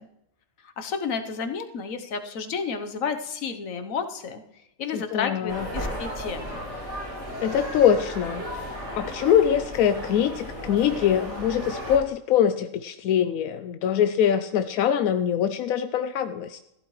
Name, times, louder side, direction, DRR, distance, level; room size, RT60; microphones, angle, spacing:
voice 1, 0.8-4.4 4.8-6.6, left 5 dB, 75° left, 7 dB, 1.4 m, -31 dB
voice 2, 4.9-5.7 7.4-8.4 9.0-16.6, left 9 dB, 90° left, 9 dB, 1.0 m, -23 dB
sound 1, 5.5-12.0, equal, 55° right, 4.0 m, -35 dB
15.0 x 11.5 x 3.2 m, 0.84 s
omnidirectional pair, 1.4 m